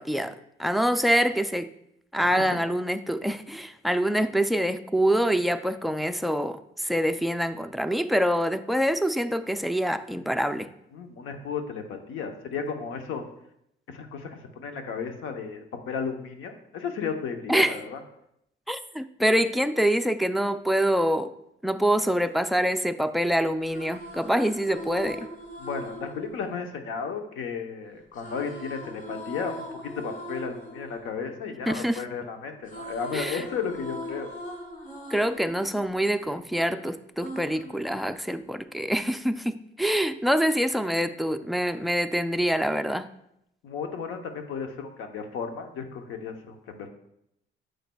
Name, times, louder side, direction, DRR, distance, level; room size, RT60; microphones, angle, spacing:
voice 1, 0.0-1.7 2.1-10.7 17.5-17.8 18.7-21.3 21.6-25.3 31.7-32.0 33.1-33.4 35.1-43.1, equal, ahead, 11 dB, 0.4 m, -25 dB
voice 2, 10.9-13.3 13.9-18.0 25.6-34.3 43.6-46.9, left 6 dB, 90° left, 5 dB, 0.9 m, -34 dB
sound 1, 23.5-27.5 28.1-32.2 32.5-36.7 37.2-38.6, equal, 40° left, 1.5 m, -41 dB
9.2 x 6.5 x 2.3 m, 0.77 s
cardioid pair, 90°, 20 cm